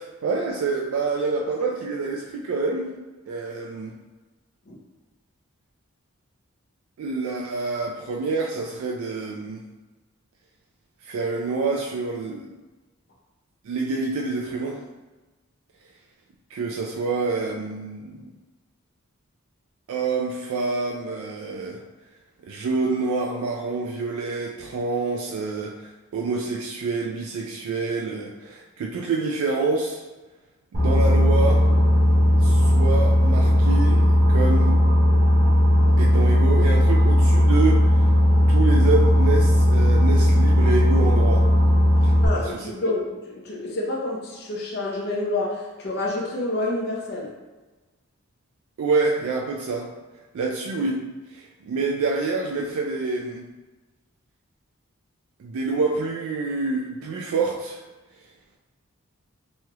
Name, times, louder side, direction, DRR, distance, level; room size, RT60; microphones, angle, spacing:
voice 1, 0.0-2.9 3.3-3.9 7.0-9.6 11.0-12.5 13.6-14.8 16.5-18.3 19.9-21.8 22.4-30.0 30.7-31.6 32.4-34.0 34.3-34.8 36.0-38.1 38.5-41.5 42.0-42.7 48.8-49.9 50.3-51.0 51.3-53.4 55.4-57.8, right 3 dB, 75° right, 0 dB, 0.3 m, -27 dB
Boat Water vehicle, 30.7-42.3, equal, 35° right, 0.6 m, -17 dB
voice 2, 42.2-47.3, left 2 dB, 45° left, -2 dB, 0.6 m, -28 dB
3.1 x 2.3 x 2.9 m, 1.2 s
head